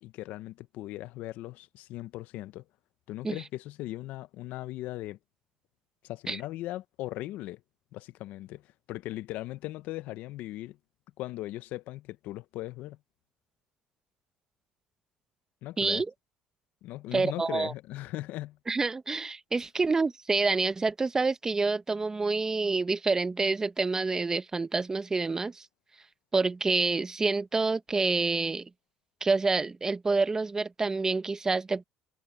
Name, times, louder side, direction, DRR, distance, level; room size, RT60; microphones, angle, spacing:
voice 1, 0.0-2.6 3.1-5.2 6.0-7.6 7.9-10.8 11.2-13.0 15.6-16.0 16.8-18.6, left 16 dB, 70° left, 0.8 m, -38 dB
voice 2, 17.1-17.7 18.7-25.6 26.3-28.7 29.2-31.8, right 3 dB, 20° right, 1.1 m, -27 dB
supercardioid pair, 100°, 3 cm